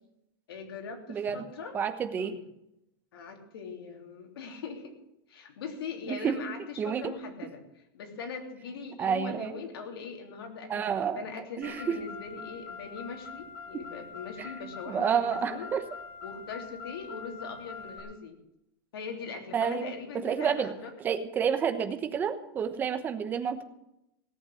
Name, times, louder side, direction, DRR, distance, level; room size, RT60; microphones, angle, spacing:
voice 1, 0.5-1.8 2.2-2.4 3.1-5.0 5.3-7.6 7.9-15.7 16.2-18.4 18.9-20.9, left 5 dB, 85° left, 3 dB, 3.3 m, -41 dB
voice 2, 1.1-1.4 1.7-2.4 6.1-6.4 6.8-7.1 9.0-9.5 10.7-11.2 11.6-12.0 13.7-13.8 14.4-14.5 14.9-15.8 19.5-20.7 21.0-23.6, right 7 dB, 15° right, 8 dB, 1.0 m, -29 dB
Car, 11.6-18.0, left 5 dB, 20° left, 4.3 m, -44 dB
17.5 x 8.1 x 7.8 m, 0.83 s
supercardioid pair, 170°, 12 cm